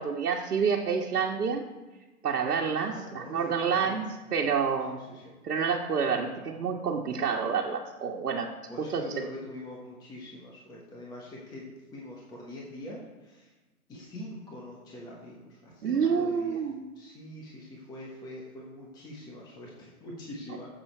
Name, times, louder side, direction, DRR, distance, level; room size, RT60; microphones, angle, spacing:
voice 1, 0.0-1.6 2.2-5.0 5.4-8.5 8.8-9.0 15.8-16.8, right 6 dB, 90° right, -3 dB, 1.4 m, -28 dB
voice 2, 2.9-4.1 4.9-5.3 8.7-13.5 13.9-16.6 16.9-20.7, left 1 dB, 10° left, -4 dB, 1.1 m, -44 dB
11.0 x 7.4 x 4.5 m, 1.2 s
hypercardioid pair, 160°, 44 cm